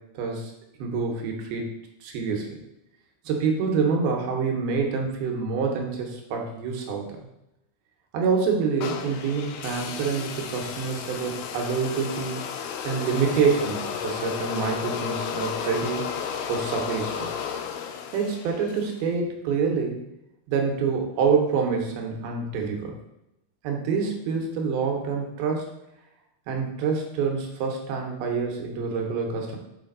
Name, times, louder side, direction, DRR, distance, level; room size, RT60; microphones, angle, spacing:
voice 1, 0.2-0.5 0.8-1.7 2.0-2.6 3.2-7.1 8.1-16.1 16.5-17.3 18.1-20.0 20.5-23.0 23.6-25.7 26.5-29.6, right 5 dB, 85° right, 1 dB, 3.0 m, -26 dB
sound 1, 8.8-19.0, left 7 dB, 85° left, 1.8 m, -33 dB
6.8 x 5.1 x 3.9 m, 0.87 s
omnidirectional pair, 4.3 m